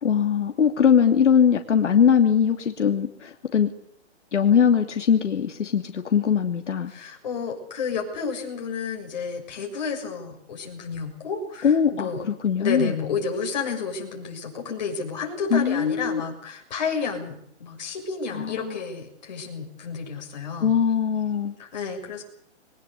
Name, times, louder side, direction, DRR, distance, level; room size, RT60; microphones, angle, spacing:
voice 1, 0.0-3.7 4.3-6.9 11.6-12.9 15.5-16.2 18.3-18.7 20.6-21.5, left 7 dB, 80° left, 5 dB, 2.7 m, -21 dB
voice 2, 6.9-12.2 12.6-20.8 21.6-22.2, left 5 dB, 35° left, 1 dB, 7.1 m, -31 dB
23.0 x 19.0 x 8.3 m, 0.69 s
hypercardioid pair, 180°, 36 cm